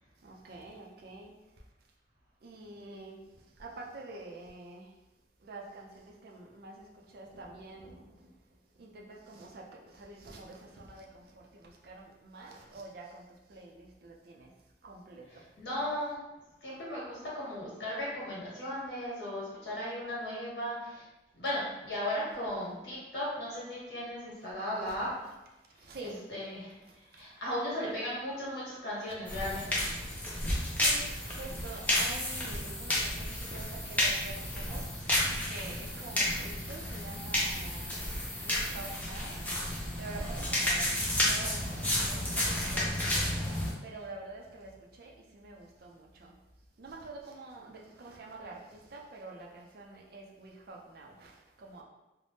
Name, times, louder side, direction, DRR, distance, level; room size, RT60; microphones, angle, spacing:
voice 1, 0.2-1.3 2.4-3.2 3.6-4.9 5.4-8.3 8.8-14.5 14.8-15.2 24.8-25.1 25.8-26.2 26.9-27.2 29.0-30.0 30.7-35.2 35.5-37.9 38.4-39.4 40.0-43.3 43.8-46.3 46.8-51.8, right 2 dB, 55° right, 0 dB, 0.4 m, -47 dB
voice 2, 15.6-16.2 16.6-21.0 21.4-25.3 26.3-26.8 27.1-29.8, left 1 dB, 70° left, -7 dB, 1.3 m, -36 dB
sound 1, 29.3-43.7, left 1 dB, 10° left, 0.5 m, -32 dB
3.3 x 2.1 x 2.7 m, 1.0 s
head